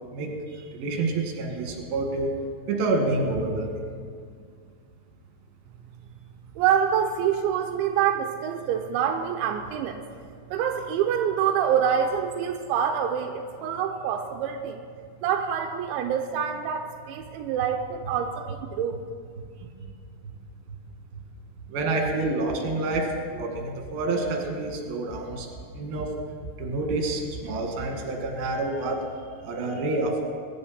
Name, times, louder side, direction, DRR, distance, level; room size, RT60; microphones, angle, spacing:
voice 1, 0.1-2.3 2.7-3.8 21.7-23.1 23.3-25.5 25.7-26.1 26.6-29.0 29.4-30.2, right 2 dB, 60° right, 1 dB, 3.5 m, -28 dB
voice 2, 6.6-10.0 10.5-14.8 15.2-19.0, right 8 dB, 85° right, 4 dB, 3.0 m, -26 dB
21.5 x 11.0 x 4.3 m, 2.1 s
omnidirectional pair, 5.3 m